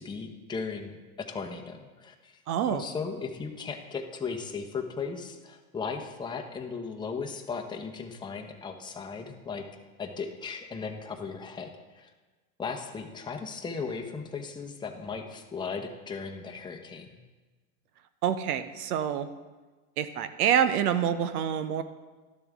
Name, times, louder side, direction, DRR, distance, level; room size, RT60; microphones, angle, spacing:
voice 1, 0.0-2.4 2.7-9.6 10.0-12.1 12.6-17.2, left 5 dB, 10° left, 3 dB, 0.9 m, -37 dB
voice 2, 2.5-2.8 18.2-19.3 20.0-21.8, right 9 dB, 80° right, 11 dB, 0.8 m, -26 dB
12.0 x 7.0 x 3.5 m, 1.3 s
hypercardioid pair, 105°, 44 cm